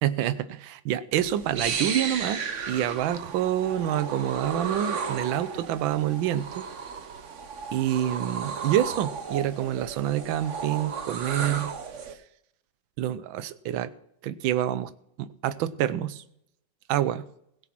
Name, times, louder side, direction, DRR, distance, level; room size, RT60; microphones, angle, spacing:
voice 1, 0.0-6.7 7.7-11.7 13.0-13.9 14.2-14.9 15.2-16.2 16.9-17.3, right 11 dB, 75° right, 1.5 m, -27 dB
sound 1, 1.1-12.1, right 6 dB, 45° right, 1.1 m, -34 dB
16.5 x 7.3 x 6.0 m
omnidirectional pair, 2.3 m